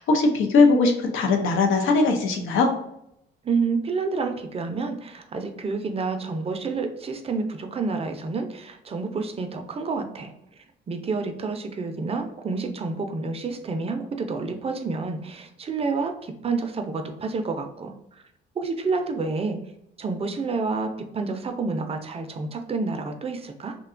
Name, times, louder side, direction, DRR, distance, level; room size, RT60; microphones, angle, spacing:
voice 1, 0.0-2.7, left 3 dB, 85° left, 4 dB, 0.6 m, -20 dB
voice 2, 3.4-10.3 10.9-18.2 18.6-19.6 20.0-23.8, right 4 dB, 30° right, 6 dB, 0.4 m, -29 dB
2.7 x 2.2 x 2.4 m, 0.79 s
cardioid pair, 90°, 20 cm